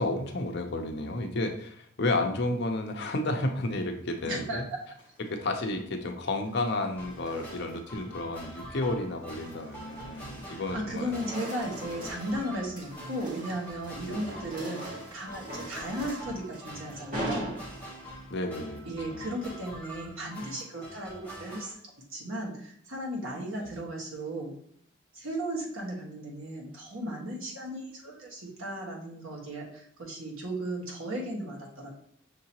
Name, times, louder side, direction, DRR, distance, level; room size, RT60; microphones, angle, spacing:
voice 1, 0.0-4.6 5.2-11.2 11.9-12.1 14.0-14.3 18.3-18.8 19.1-19.3 23.6-23.7, left 2 dB, 55° left, 4 dB, 0.6 m, -32 dB
voice 2, 4.3-4.6 10.5-17.5 18.8-21.7 22.1-24.5 25.1-31.9, right 1 dB, 75° right, -3 dB, 1.4 m, -36 dB
sound 1, 4.8-5.3 6.4-7.9 8.4-8.7 9.1-10.6 10.8-18.2, right 1 dB, 40° right, 1.7 m, -42 dB
sound 2, 7.0-21.7, right 1 dB, 10° left, 0.8 m, -45 dB
6.0 x 2.8 x 2.8 m, 0.66 s
head